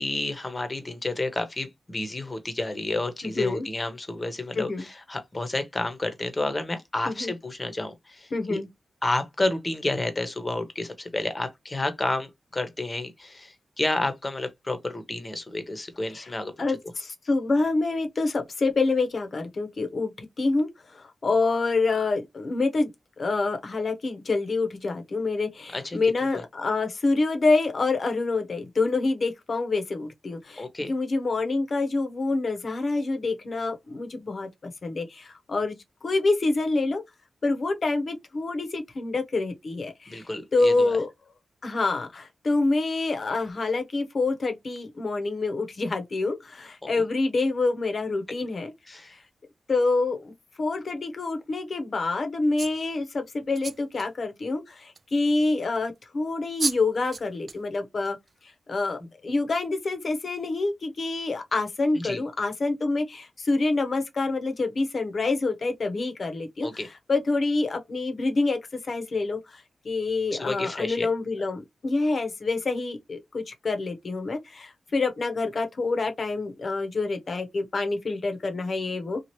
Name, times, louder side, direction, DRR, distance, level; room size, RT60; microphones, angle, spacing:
voice 1, 0.0-8.6 9.0-16.8 25.7-26.4 30.6-30.9 40.1-41.0 46.8-47.0 48.9-49.1 59.2-59.3 61.9-62.2 66.6-66.9 70.3-71.1, left 2 dB, 30° left, 0.9 m, -30 dB
voice 2, 3.2-3.6 4.6-4.9 7.1-7.3 8.3-8.7 16.1-16.3 16.6-22.9 23.2-35.8 36.0-37.0 37.4-40.2 40.5-41.1 41.6-48.7 49.1-49.2 49.7-50.3 50.6-58.2 58.7-66.7 67.1-68.6 68.8-79.2, left 3 dB, 55° left, 0.8 m, -27 dB
sound 1, 52.6-52.9 53.5-54.1 54.9-55.0 56.2-56.3 56.6-56.8 57.1-57.6 58.0-58.3, right 4 dB, 50° right, 0.3 m, -32 dB
2.9 x 2.4 x 3.0 m
cardioid pair, 65°, 0 cm